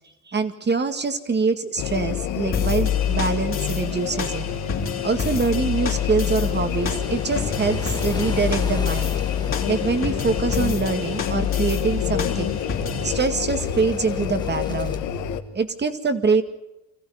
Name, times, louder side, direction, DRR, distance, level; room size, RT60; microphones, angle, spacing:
voice 1, 0.3-4.5 5.0-9.2 9.7-12.6 13.0-15.1 15.5-16.4, right 4 dB, 35° right, 9 dB, 2.0 m, -24 dB
sound 1, 1.8-15.4, left 10 dB, 90° left, 1.5 m, -26 dB
sound 2, 2.5-13.2, left 4 dB, 45° left, 3.2 m, -33 dB
sound 3, 4.8-15.0, left 3 dB, 15° left, 1.5 m, -36 dB
25.5 x 15.0 x 9.3 m, 0.93 s
cardioid pair, 90°, 30 cm